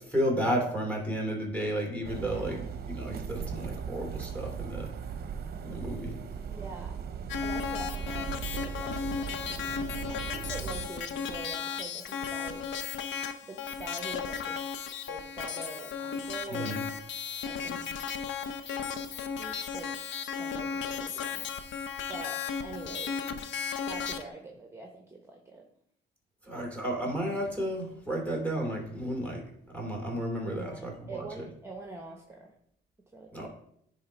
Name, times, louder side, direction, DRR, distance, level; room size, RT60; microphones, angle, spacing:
voice 1, 0.1-2.6 2.9-4.9 5.6-6.2 16.5-16.8 26.5-29.4 29.7-31.3 33.3-33.5, equal, 5° left, 0 dB, 2.7 m, -32 dB
sound 1, 2.0-10.9, right 7 dB, 50° right, 0.7 m, -38 dB
voice 2, 2.2-2.6 6.5-7.0 7.4-9.3 10.1-12.6 13.4-14.6 15.1-16.8 17.4-17.8 19.4-19.9 20.3-21.4 21.8-23.3 23.8-25.7 30.4-32.5 33.1-33.4, right 3 dB, 15° right, 2 dB, 1.1 m, -44 dB
sound 2, 7.3-24.2, left 6 dB, 70° left, 0.7 m, -35 dB
10.0 x 3.7 x 4.5 m, 0.70 s
cardioid pair, 90°, 20 cm